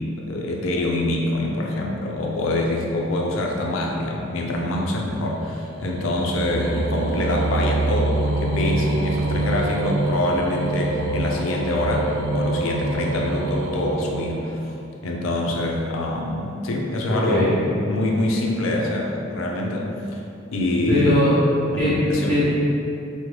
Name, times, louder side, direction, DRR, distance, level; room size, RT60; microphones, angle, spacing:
voice 1, 0.0-14.6 15.0-17.5 17.9-20.2 20.5-21.2 21.7-22.3, left 1 dB, 80° left, -1 dB, 0.4 m, -25 dB
sound 1, 4.0-14.9, right 2 dB, 85° right, 0.3 m, -26 dB
voice 2, 17.1-17.5 20.9-21.4 21.8-22.0 22.3-22.5, left 1 dB, 10° left, -16 dB, 0.7 m, -20 dB
3.6 x 2.1 x 3.1 m, 2.7 s
head